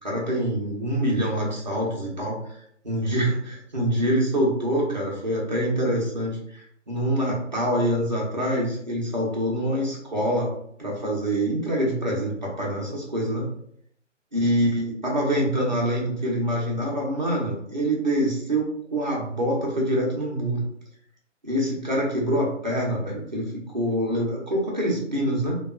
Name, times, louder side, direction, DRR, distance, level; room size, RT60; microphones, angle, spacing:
voice 1, 0.0-2.4 2.8-10.5 10.8-13.5 14.3-18.7 18.9-20.6 21.4-25.6, equal, 40° right, -4 dB, 0.7 m, -25 dB
2.5 x 2.2 x 2.4 m, 0.69 s
figure-of-eight pair, 160°, 37 cm